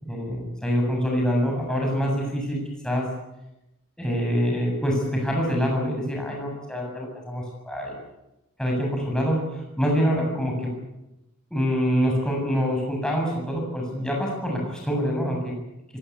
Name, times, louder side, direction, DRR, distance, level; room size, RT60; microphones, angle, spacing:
voice 1, 0.1-3.1 4.0-7.9 8.6-10.7 11.5-15.5, equal, 5° left, -1 dB, 7.4 m, -25 dB
22.0 x 19.5 x 8.7 m, 0.95 s
head